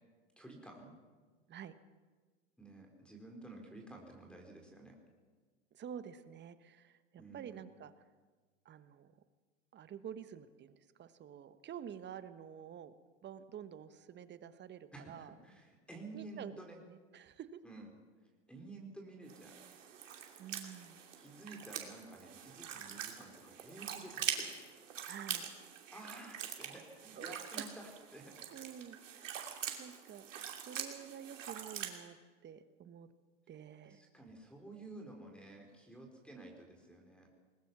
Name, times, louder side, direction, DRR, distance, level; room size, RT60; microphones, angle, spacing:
voice 1, 0.4-0.9 2.6-5.0 7.2-7.6 14.9-16.8 17.6-17.9 18.5-19.6 21.2-24.5 25.9-28.3 33.8-37.3, right 2 dB, 5° left, 2 dB, 4.2 m, -52 dB
voice 2, 5.7-7.9 8.6-9.1 9.7-12.9 13.2-15.3 16.1-16.6 16.9-17.6 20.4-21.0 25.0-25.5 27.2-27.7 28.5-30.3 30.6-32.2 32.4-33.1 33.5-34.0, right 9 dB, 30° right, 12 dB, 1.2 m, -49 dB
sound 1, 19.3-32.0, right 8 dB, 80° right, 2.9 m, -44 dB
21.0 x 20.5 x 6.1 m, 1.4 s
hypercardioid pair, 105°, 37 cm